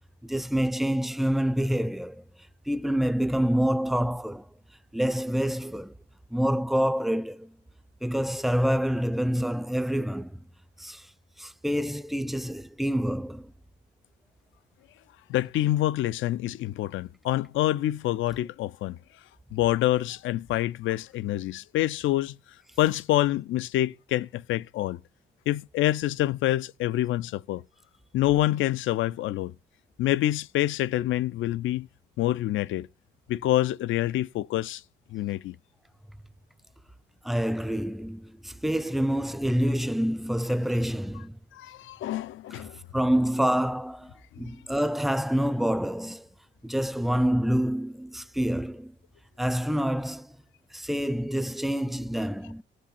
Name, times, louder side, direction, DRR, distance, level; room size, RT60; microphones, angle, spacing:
voice 1, 0.2-2.2 2.7-4.5 4.9-5.9 6.3-7.5 8.0-10.4 10.8-11.1 11.4-13.5 37.2-41.4 42.5-42.7 42.9-46.3 46.6-48.9 49.4-50.4 50.7-52.6, equal, ahead, 0.4 m, -27 dB
voice 2, 15.3-19.0 19.5-22.4 22.8-25.0 25.5-27.6 28.1-29.5 30.0-31.9 32.2-32.9 33.3-34.8 35.1-35.6 41.5-42.8 44.4-44.5, left 14 dB, 80° left, 0.5 m, -26 dB
17.0 x 6.2 x 4.2 m
cardioid pair, 90°, 20 cm